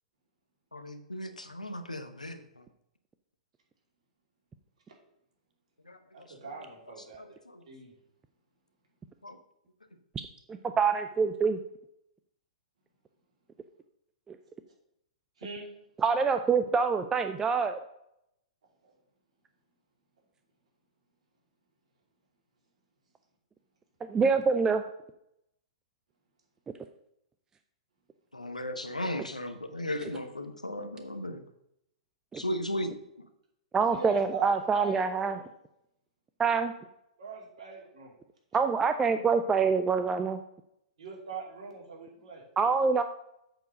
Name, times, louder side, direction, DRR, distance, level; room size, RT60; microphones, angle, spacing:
voice 1, 0.7-2.6 5.9-6.5 7.2-7.6 9.2-9.4 28.3-31.4 32.3-33.0, left 1 dB, 90° left, 8 dB, 0.9 m, -36 dB
voice 2, 6.1-7.2 7.7-7.9 15.4-15.7 18.8-18.9 33.9-35.4 37.2-38.1 41.0-42.4, right 5 dB, 60° right, -1 dB, 2.7 m, -42 dB
voice 3, 10.8-11.6 14.3-14.4 16.0-17.8 24.1-24.8 32.3-32.4 33.7-35.4 36.4-36.7 38.5-40.4 42.6-43.0, right 5 dB, 15° right, 9 dB, 0.4 m, -25 dB
7.8 x 4.5 x 6.4 m, 0.79 s
figure-of-eight pair, 105°, 4 cm